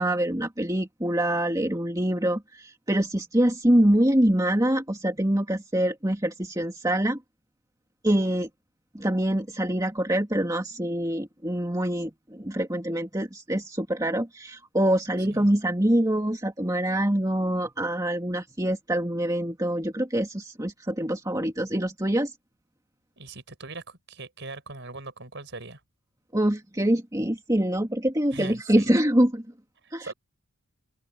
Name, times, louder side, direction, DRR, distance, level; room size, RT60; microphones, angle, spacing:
voice 1, 0.0-7.2 8.0-8.5 8.9-22.3 26.3-29.5 29.9-30.1, right 1 dB, 15° right, 2.3 m, -25 dB
voice 2, 23.2-25.8 28.3-28.9 29.8-30.1, right 3 dB, 55° right, 5.6 m, -40 dB
open air
head